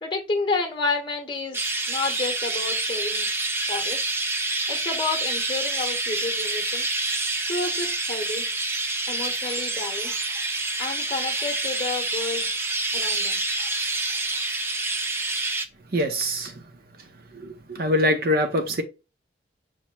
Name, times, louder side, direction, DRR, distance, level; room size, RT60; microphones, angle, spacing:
voice 1, 0.0-3.3 3.7-4.1 4.7-6.9 7.5-8.4 9.1-10.2 10.8-12.5 12.9-13.4, left 3 dB, 25° left, 0.9 m, -30 dB
Chirp tweet, 1.5-15.6, right 2 dB, 15° right, 0.3 m, -27 dB
voice 2, 15.9-16.6 17.3-18.8, left 1 dB, 50° right, 0.7 m, -24 dB
5.9 x 2.1 x 4.3 m
head